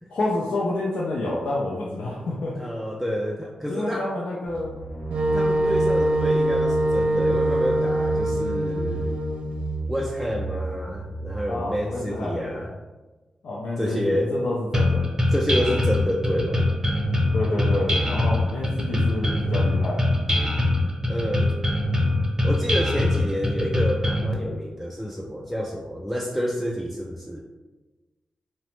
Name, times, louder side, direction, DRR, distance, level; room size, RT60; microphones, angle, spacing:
voice 1, 0.1-2.5 3.7-4.7 11.5-12.5 13.4-15.1 17.3-20.0, left 2 dB, 90° left, -6 dB, 0.4 m, -28 dB
voice 2, 2.6-4.1 5.3-9.1 9.9-12.7 13.8-14.3 15.3-16.7 21.1-21.6 22.4-27.4, equal, ahead, -2 dB, 0.3 m, -28 dB
sound 1, 4.5-12.2, right 3 dB, 45° left, 0.7 m, -33 dB
Wind instrument woodwind instrument, 5.1-9.8, right 1 dB, 80° right, 0.3 m, -23 dB
sound 2, 14.7-24.3, left 1 dB, 25° right, 0.7 m, -22 dB
2.8 x 2.1 x 3.1 m, 1.2 s
cardioid pair, 70°, 2 cm